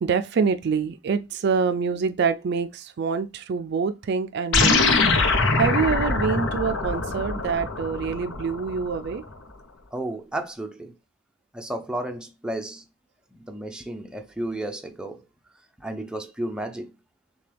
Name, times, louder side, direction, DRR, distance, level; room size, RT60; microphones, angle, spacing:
voice 1, 0.0-5.0 5.6-9.2, right 5 dB, 55° right, 0.4 m, -26 dB
sound 1, 4.5-9.2, left 3 dB, 70° left, 0.8 m, -23 dB
voice 2, 9.9-11.0 11.5-12.8 13.4-15.2 15.8-16.9, right 1 dB, 5° right, 0.5 m, -32 dB
6.6 x 2.3 x 3.3 m
head